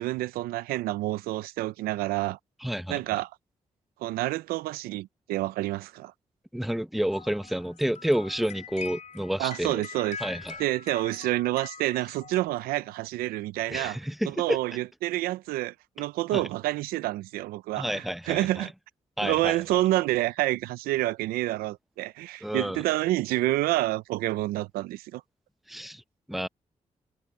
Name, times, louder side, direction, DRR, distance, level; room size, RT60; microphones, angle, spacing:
voice 1, 0.0-2.4 2.9-3.3 4.0-6.1 9.4-10.2 10.6-14.0 14.3-18.7 19.2-25.2, right 17 dB, 90° right, 0.6 m, -28 dB
voice 2, 2.6-3.0 6.5-9.9 10.2-10.6 13.7-14.6 16.3-16.4 17.8-18.7 19.2-19.6 22.4-22.8 25.7-26.0 26.3-26.5, equal, ahead, 0.8 m, -30 dB
sound 1, 7.1-13.0, left 6 dB, 55° left, 3.6 m, -43 dB
supercardioid pair, 45°, 15 cm